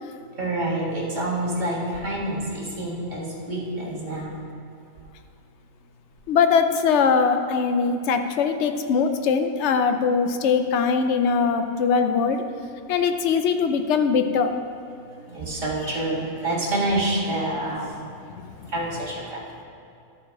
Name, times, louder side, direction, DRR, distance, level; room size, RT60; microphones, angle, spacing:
voice 1, 0.4-4.4 15.3-18.0 18.7-19.4, right 1 dB, 30° right, -7 dB, 2.0 m, -27 dB
voice 2, 6.3-12.4 12.9-14.5 18.4-18.7, left 5 dB, 60° left, 7 dB, 0.8 m, -21 dB
12.0 x 5.0 x 4.7 m, 2.6 s
omnidirectional pair, 1.6 m